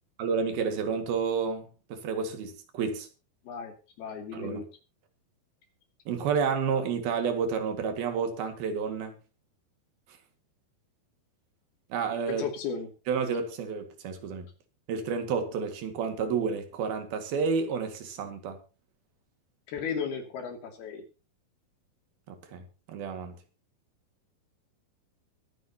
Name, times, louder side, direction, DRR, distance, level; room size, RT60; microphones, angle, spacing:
voice 1, 0.2-3.1 4.3-4.6 6.1-9.1 11.9-12.5 13.1-14.5 14.9-18.6 22.3-23.4, right 6 dB, 75° right, 3.8 m, -30 dB
voice 2, 3.4-4.6 12.3-12.9 19.7-21.0, left 6 dB, 85° left, 4.7 m, -35 dB
22.5 x 9.8 x 2.9 m
omnidirectional pair, 4.4 m